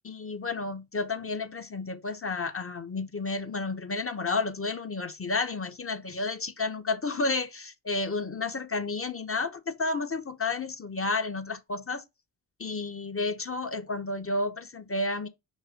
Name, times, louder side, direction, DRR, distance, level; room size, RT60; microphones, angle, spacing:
voice 1, 0.0-12.0 12.6-15.3, left 3 dB, 25° left, 1.1 m, -31 dB
5.9 x 3.2 x 5.1 m
hypercardioid pair, 40°, 49 cm